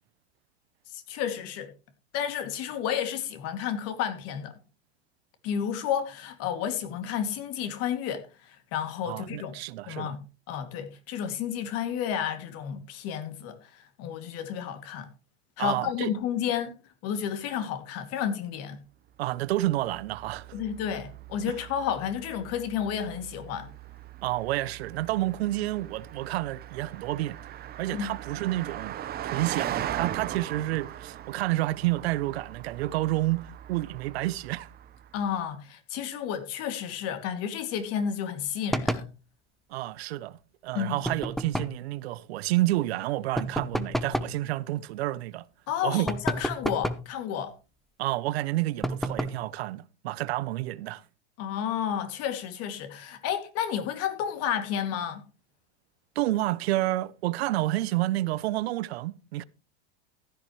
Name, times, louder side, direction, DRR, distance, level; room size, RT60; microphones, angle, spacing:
voice 1, 0.9-1.7 2.1-4.5 5.4-9.5 9.9-15.1 15.6-16.7 17.0-18.8 20.5-23.7 27.9-28.1 35.1-39.1 40.7-41.0 45.7-47.5 51.4-55.2, left 9 dB, 45° left, 2.5 m, -31 dB
voice 2, 9.1-10.2 15.6-16.1 19.2-20.5 21.5-21.6 24.2-29.0 29.2-34.7 39.7-45.5 45.8-46.1 48.0-51.0 56.2-59.4, right 16 dB, 70° right, 0.8 m, -29 dB
Car passing by, 19.5-35.2, right 11 dB, 30° right, 1.0 m, -40 dB
sound 1, 38.7-39.1 41.0-41.8 43.4-44.4 46.1-47.1 48.8-49.5, equal, ahead, 0.8 m, -30 dB
15.0 x 10.5 x 3.2 m
hypercardioid pair, 115°, 33 cm